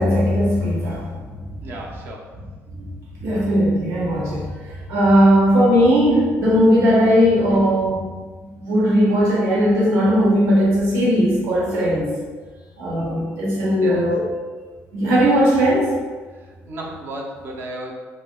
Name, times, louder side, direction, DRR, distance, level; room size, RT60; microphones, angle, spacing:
voice 1, 0.0-1.4 2.8-2.9 3.2-8.1 8.6-12.1 12.8-14.3 14.9-16.0, equal, 70° right, -7 dB, 1.1 m, -18 dB
voice 2, 1.6-2.3 13.8-14.1 16.4-17.9, right 1 dB, 45° right, 0 dB, 0.5 m, -34 dB
3.5 x 3.3 x 2.2 m, 1.4 s
cardioid pair, 165°, 5 cm